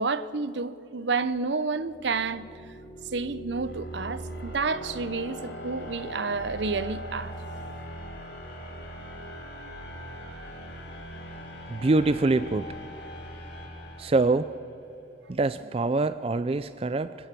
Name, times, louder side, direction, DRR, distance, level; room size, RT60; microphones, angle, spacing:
voice 1, 0.0-2.4 3.1-7.3, right 4 dB, 70° right, 0.8 m, -30 dB
sound 1, 1.8-14.7, equal, 65° left, 6.4 m, -40 dB
voice 2, 11.7-12.7 14.0-14.5 15.3-17.2, right 3 dB, 30° right, 0.4 m, -24 dB
26.5 x 16.0 x 6.9 m
head